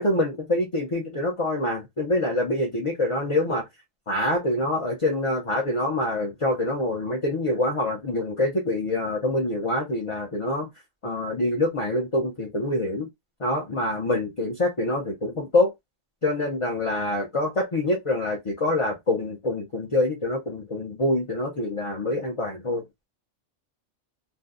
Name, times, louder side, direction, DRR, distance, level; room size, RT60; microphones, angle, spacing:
voice 1, 0.0-3.6 4.1-10.7 11.0-13.1 13.4-15.7 16.2-22.8, left 2 dB, 35° left, 0.6 m, -25 dB
2.6 x 2.2 x 3.6 m
omnidirectional pair, 1.2 m